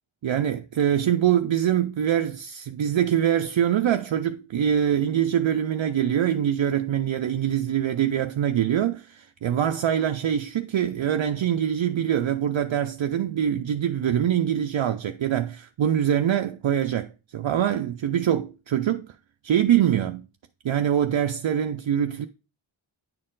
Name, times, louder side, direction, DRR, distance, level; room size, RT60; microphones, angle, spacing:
voice 1, 0.2-19.1 19.4-20.2 20.6-22.3, right 10 dB, 65° right, 0.5 m, -24 dB
9.3 x 4.3 x 3.8 m
wide cardioid pair, 45°, 49 cm